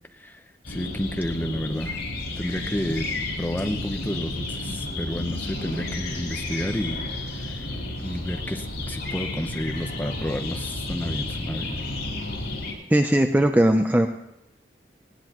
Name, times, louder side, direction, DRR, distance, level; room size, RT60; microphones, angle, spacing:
voice 1, 0.1-2.0 2.4-3.1 3.4-7.0 7.3-7.6 8.0-11.8, equal, 10° left, 6 dB, 0.9 m, -31 dB
sound 1, 0.6-12.7, left 2 dB, 90° left, 4.6 m, -32 dB
voice 2, 12.9-14.1, right 1 dB, 10° right, 5 dB, 0.6 m, -19 dB
19.0 x 18.5 x 3.0 m, 0.86 s
head